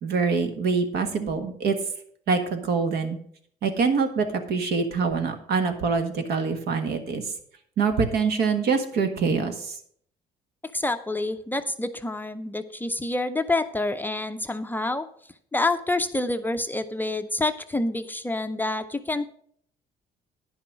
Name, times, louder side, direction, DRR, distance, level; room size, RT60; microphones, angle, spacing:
voice 1, 0.0-1.7 2.3-3.2 3.6-7.2 7.8-9.7, right 5 dB, 70° right, 7 dB, 1.5 m, -25 dB
voice 2, 10.7-15.1 15.5-19.3, left 2 dB, 10° left, 8 dB, 0.5 m, -27 dB
10.0 x 5.9 x 6.0 m, 0.63 s
cardioid pair, 110°, 17 cm